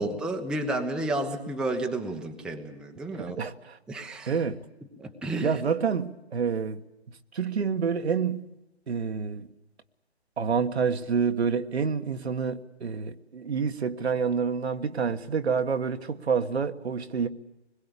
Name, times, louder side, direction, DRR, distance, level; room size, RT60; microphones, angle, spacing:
voice 1, 0.0-3.4 3.9-4.5 5.0-5.6, right 2 dB, ahead, 1.0 m, -31 dB
voice 2, 4.3-4.6 5.4-6.8 7.3-8.5 8.9-9.5 10.4-17.3, right 6 dB, 70° right, 1.5 m, -28 dB
25.0 x 21.5 x 8.6 m
figure-of-eight pair, 140°, 33 cm